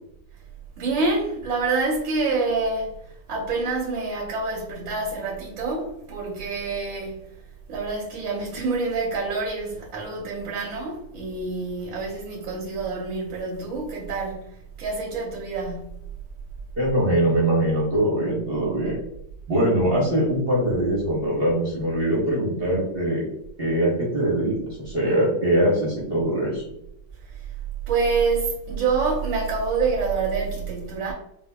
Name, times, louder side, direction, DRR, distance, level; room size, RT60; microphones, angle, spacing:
voice 1, 0.8-7.3 7.7-14.5 14.8-16.0 27.3-27.4 27.9-31.1, right 4 dB, 90° right, 1.6 m, -27 dB
voice 2, 16.8-19.0 19.5-23.2 23.6-26.7, right 1 dB, 45° right, 0.8 m, -22 dB
5.1 x 2.2 x 2.2 m
omnidirectional pair, 2.0 m